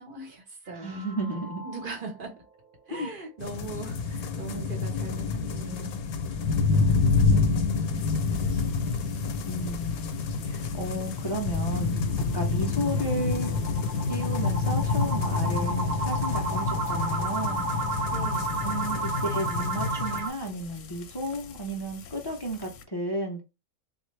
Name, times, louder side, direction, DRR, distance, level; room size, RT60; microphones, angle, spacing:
voice 1, 0.0-2.4 2.9-6.0 6.7-7.8 8.1-9.3 18.1-18.6, right 3 dB, 40° right, 1.0 m, -41 dB
sound 1, 0.7-2.2 2.6-2.7 3.0-3.1 3.6-3.7 8.5-20.3, right 2 dB, 65° right, 1.0 m, -34 dB
voice 2, 0.8-1.6 2.9-3.1 9.4-12.0 12.3-13.5 14.1-17.7 18.6-23.4, right 1 dB, 35° left, 0.3 m, -33 dB
sound 2, 3.4-20.2, left 4 dB, 90° left, 1.1 m, -28 dB
Frying (food), 7.9-22.8, left 5 dB, 65° left, 0.9 m, -47 dB
3.9 x 2.5 x 3.1 m
omnidirectional pair, 1.5 m